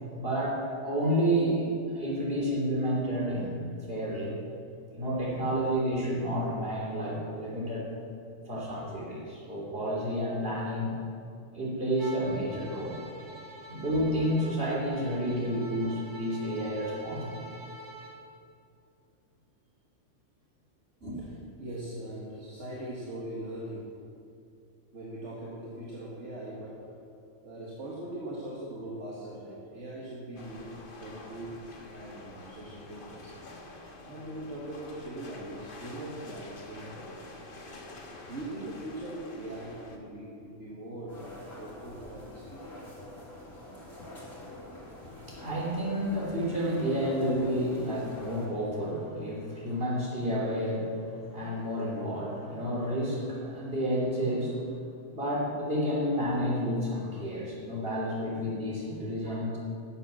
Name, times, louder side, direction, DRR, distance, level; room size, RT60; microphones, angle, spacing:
voice 1, 0.2-4.4 5.0-7.9 8.5-10.9 11.5-13.0 13.7-17.5 21.0-21.2 45.0-54.8 55.1-59.6, equal, 45° right, -5 dB, 3.4 m, -30 dB
voice 2, 8.3-8.7 21.2-23.9 24.9-26.9 27.4-33.4 34.0-37.4 38.3-42.6 44.0-44.1 59.0-59.1, right 1 dB, 65° right, -5 dB, 2.0 m, -41 dB
Bowed string instrument, 12.0-18.2, right 1 dB, 15° right, 2.1 m, -46 dB
sound 1, 30.4-40.0, left 2 dB, 45° left, 1.3 m, -47 dB
sound 2, 41.1-48.5, left 1 dB, 80° left, 4.1 m, -46 dB
11.5 x 7.6 x 7.4 m, 2.5 s
omnidirectional pair, 1.4 m